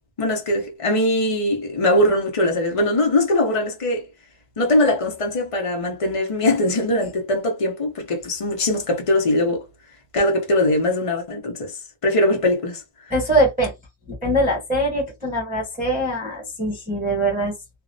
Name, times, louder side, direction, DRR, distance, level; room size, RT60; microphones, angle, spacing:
voice 1, 0.2-4.1 4.6-9.7 10.1-11.8 12.0-12.8, left 1 dB, 55° left, 0.3 m, -21 dB
voice 2, 13.1-13.7 14.1-17.5, right 1 dB, 10° right, 0.7 m, -22 dB
2.6 x 2.0 x 2.5 m
omnidirectional pair, 1.5 m